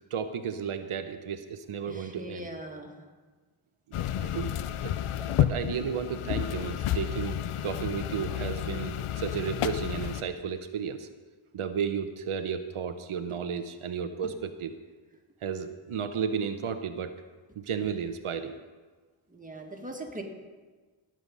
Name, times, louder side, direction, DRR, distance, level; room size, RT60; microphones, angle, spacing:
voice 1, 0.0-2.5 3.9-4.5 4.8-11.1 11.5-14.7 15.4-17.1 17.6-18.5, right 7 dB, 80° right, 8 dB, 0.9 m, -33 dB
voice 2, 1.9-2.9 19.3-20.2, right 1 dB, 15° right, 1 dB, 2.0 m, -40 dB
sound 1, 3.9-10.2, left 11 dB, 85° left, 0.7 m, -31 dB
18.0 x 7.9 x 5.4 m, 1.4 s
wide cardioid pair, 95°, 49 cm